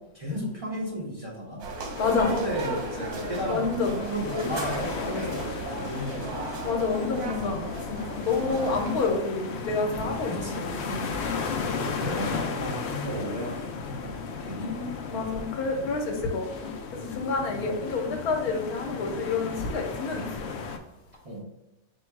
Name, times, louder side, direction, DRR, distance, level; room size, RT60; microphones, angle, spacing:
voice 1, 0.0-1.6 2.1-6.4 8.4-8.7 10.3-10.7 11.7-14.9 17.5-17.7 21.2-21.4, equal, 30° right, -6 dB, 0.8 m, -34 dB
sound 1, 1.6-9.1, right 2 dB, 80° right, 1.3 m, -36 dB
sound 2, 1.9-20.8, left 5 dB, 65° left, 0.6 m, -35 dB
voice 2, 2.0-2.3 3.5-4.0 6.6-11.1 14.6-20.5, left 4 dB, 85° left, 2 dB, 1.3 m, -29 dB
4.5 x 2.3 x 4.5 m, 0.95 s
omnidirectional pair, 1.6 m